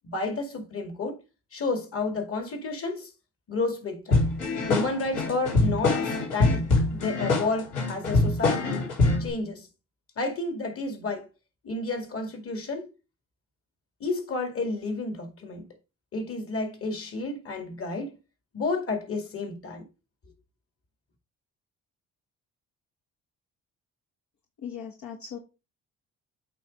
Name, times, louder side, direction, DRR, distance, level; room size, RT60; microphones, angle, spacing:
voice 1, 0.0-1.2 1.5-3.1 3.5-4.3 4.7-8.9 9.2-9.7 10.2-11.3 11.6-12.9 14.0-15.7 16.1-18.2 18.5-19.8, left 3 dB, 45° left, 2.2 m, -31 dB
sound 1, 4.1-9.3, left 2 dB, 85° left, 3.4 m, -24 dB
voice 2, 24.6-25.4, left 8 dB, 70° left, 1.3 m, -38 dB
8.3 x 3.1 x 5.1 m
cardioid pair, 90°, 30 cm